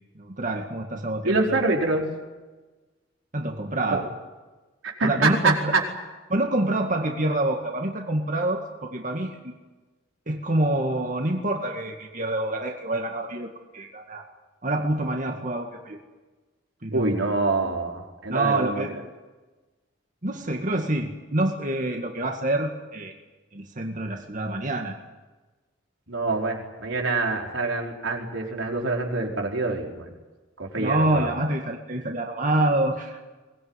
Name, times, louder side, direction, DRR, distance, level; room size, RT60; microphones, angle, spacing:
voice 1, 0.2-1.6 3.3-4.1 5.0-5.7 6.3-9.5 10.3-14.2 14.6-16.0 16.8-17.2 18.3-18.9 20.2-23.1 23.5-25.0 30.8-33.2, right 1 dB, 40° right, 2 dB, 2.0 m, -26 dB
voice 2, 1.2-2.0 3.9-4.0 4.8-5.8 16.9-18.9 26.1-30.1 30.6-31.3, right 3 dB, 85° right, 0 dB, 4.9 m, -25 dB
23.0 x 20.0 x 9.9 m, 1.2 s
head